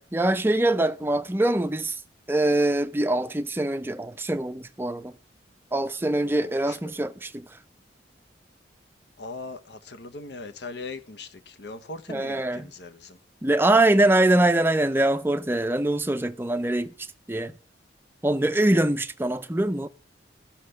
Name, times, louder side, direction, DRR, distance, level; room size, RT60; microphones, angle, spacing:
voice 1, 0.0-1.9 2.3-5.1 5.7-7.5 12.1-12.7 13.4-16.9 17.3-17.5 18.2-19.9, right 1 dB, 10° right, 0.5 m, -23 dB
voice 2, 6.4-7.0 9.2-13.2 18.6-18.8, left 3 dB, 65° left, 0.9 m, -40 dB
13.5 x 5.8 x 6.5 m
head